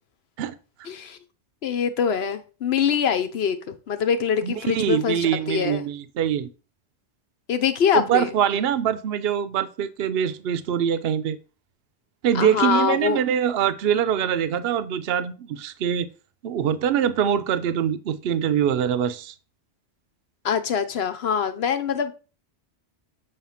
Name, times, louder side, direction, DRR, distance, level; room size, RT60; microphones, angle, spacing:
voice 1, 0.8-1.2 1.6-5.8 7.5-8.3 12.3-13.2 20.4-22.1, left 7 dB, 65° left, 1.0 m, -24 dB
voice 2, 4.4-6.5 7.9-11.4 12.2-16.1 16.4-19.3, right 9 dB, 65° right, 0.8 m, -23 dB
7.5 x 3.3 x 5.7 m
omnidirectional pair, 1.1 m